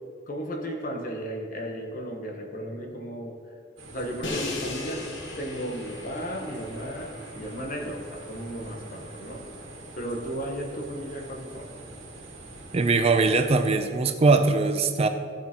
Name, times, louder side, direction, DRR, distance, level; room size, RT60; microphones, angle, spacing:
voice 1, 0.3-3.5 3.9-9.5 10.0-11.7, equal, 45° left, 1 dB, 1.0 m, -35 dB
sound 1, 3.8-13.8, right 2 dB, 85° right, 1.9 m, -45 dB
Crash cymbal, 4.2-10.2, left 3 dB, 80° left, 1.2 m, -39 dB
voice 2, 12.7-15.1, right 3 dB, 30° right, 8 dB, 0.4 m, -21 dB
15.5 x 7.4 x 2.9 m, 2.3 s
head